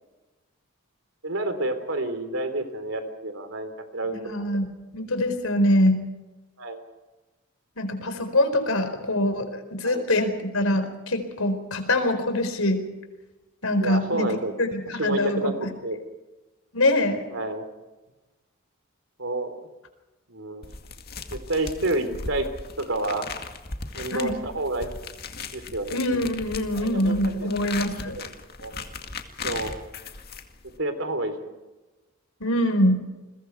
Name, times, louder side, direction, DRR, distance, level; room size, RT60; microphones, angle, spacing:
voice 1, 1.2-4.5 6.6-6.8 9.8-10.0 13.8-14.5 15.0-15.5 15.8-16.0 17.3-17.6 19.2-19.6 20.3-20.6 21.3-22.5 22.8-23.3 23.9-25.0 25.5-26.0 26.7-27.5 28.2-28.3 28.6-28.7 29.4-29.8 30.6-31.3, right 2 dB, 70° right, 8 dB, 3.4 m, -29 dB
voice 2, 4.0-4.7 4.9-6.0 7.8-12.8 13.6-15.7 16.7-17.2 24.1-24.4 25.9-28.2 32.4-33.0, left 1 dB, 85° left, 8 dB, 4.4 m, -24 dB
sound 1, 20.6-30.8, left 4 dB, 45° left, 2.2 m, -38 dB
29.5 x 22.5 x 4.6 m, 1.1 s
head